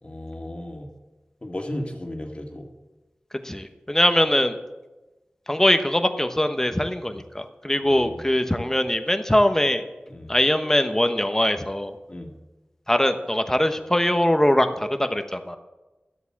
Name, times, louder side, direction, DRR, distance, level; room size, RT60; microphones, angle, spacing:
voice 1, 0.0-0.9 1.4-2.7 7.1-7.2 7.8-8.2 10.1-10.3 12.1-12.3, left 1 dB, 35° left, 2 dB, 2.1 m, -35 dB
voice 2, 3.4-4.6 5.5-9.8 10.3-11.9 12.9-15.6, left 1 dB, 15° left, 8 dB, 1.1 m, -22 dB
12.5 x 8.1 x 7.4 m, 1.1 s
wide cardioid pair, 50°, 3 cm